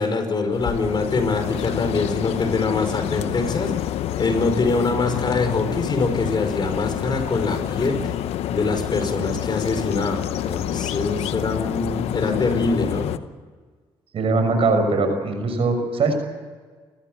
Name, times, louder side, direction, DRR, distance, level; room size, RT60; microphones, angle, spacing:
voice 1, 0.0-3.7 4.2-8.0 8.5-13.1, left 3 dB, 45° left, 6 dB, 5.3 m, -24 dB
sound 1, 0.5-13.2, left 12 dB, 80° left, 0.9 m, -28 dB
voice 2, 14.1-16.1, right 3 dB, 65° right, 6 dB, 6.1 m, -21 dB
28.0 x 14.5 x 8.1 m, 1.5 s
supercardioid pair, 60°, 10 cm